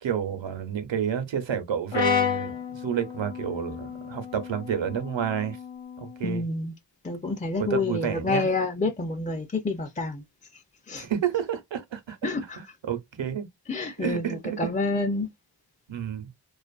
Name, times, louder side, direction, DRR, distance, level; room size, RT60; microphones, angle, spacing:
voice 1, 0.0-5.6 6.0-6.4 7.7-8.5 11.0-12.3 12.9-13.5 14.0-14.6 15.9-16.3, right 8 dB, 85° right, 0.7 m, -30 dB
Brass instrument, 1.9-6.2, left 8 dB, 85° left, 0.8 m, -31 dB
voice 2, 6.2-6.7 7.0-10.2 10.5-10.6 10.9-11.1 12.2-12.6 13.7-15.3, left 3 dB, 20° left, 0.4 m, -28 dB
2.5 x 2.4 x 2.3 m
wide cardioid pair, 65°, 44 cm